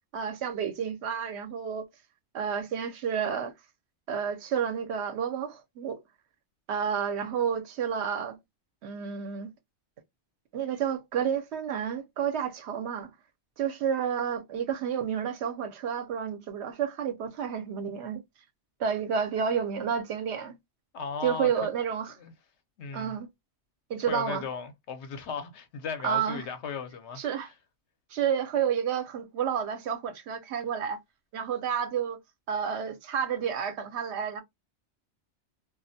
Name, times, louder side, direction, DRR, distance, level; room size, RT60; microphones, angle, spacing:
voice 1, 0.1-1.9 2.3-3.5 4.1-6.0 6.7-8.4 8.8-9.5 10.5-13.1 13.6-18.2 18.8-20.6 21.2-22.1 22.9-23.3 23.9-24.4 26.0-26.5 27.2-27.5 28.1-31.0 31.3-32.2 32.5-34.4, right 7 dB, 70° right, 0.8 m, -30 dB
voice 2, 20.9-21.7 22.2-22.3 22.8-23.1 24.1-27.5, left 6 dB, 75° left, 0.9 m, -36 dB
2.3 x 2.1 x 2.6 m
omnidirectional pair, 1.2 m